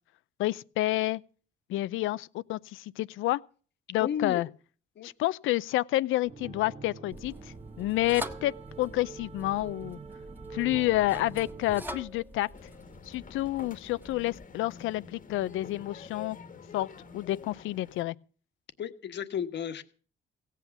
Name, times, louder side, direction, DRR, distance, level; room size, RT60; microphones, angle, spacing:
voice 1, 0.4-1.2 1.7-3.4 3.9-4.5 5.0-10.0 10.5-12.5 13.1-16.4 16.7-18.2, left 16 dB, 90° left, 0.6 m, -29 dB
voice 2, 4.0-4.4 5.0-5.1 18.8-19.8, left 8 dB, 60° left, 1.4 m, -33 dB
sound 1, 6.2-11.9, right 4 dB, 30° right, 1.1 m, -45 dB
sound 2, 7.1-14.4, equal, 10° right, 1.6 m, -45 dB
sound 3, 12.5-18.0, left 5 dB, 40° left, 1.4 m, -48 dB
16.5 x 8.3 x 7.1 m
cardioid pair, 90°, 20 cm